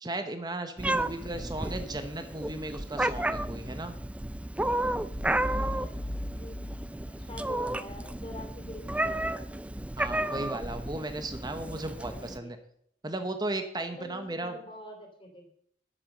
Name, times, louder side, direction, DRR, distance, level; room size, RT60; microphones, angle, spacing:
voice 1, 0.0-4.0 10.0-12.6 13.0-14.6, right 2 dB, 25° right, 7 dB, 1.0 m, -36 dB
Meow, 0.8-12.4, right 1 dB, 5° right, 0.4 m, -32 dB
sound 1, 5.1-7.9, left 1 dB, 50° left, 1.3 m, -38 dB
voice 2, 5.2-9.6 10.3-10.5 11.8-12.5 14.0-15.5, left 1 dB, 30° left, 2 dB, 3.0 m, -46 dB
13.0 x 7.6 x 6.6 m, 0.67 s
head